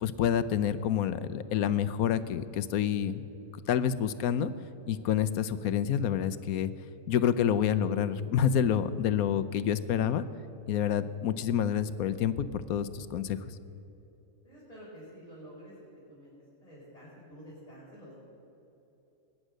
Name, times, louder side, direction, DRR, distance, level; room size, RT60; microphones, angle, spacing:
voice 1, 0.0-3.2 3.7-4.5 4.9-6.7 7.1-10.2 10.7-13.4, left 9 dB, 85° left, 14 dB, 1.2 m, -28 dB
voice 2, 14.4-15.7 16.1-16.3 16.6-18.2, equal, 25° left, -9 dB, 4.7 m, -49 dB
21.0 x 10.0 x 6.4 m, 3.0 s
omnidirectional pair, 1.5 m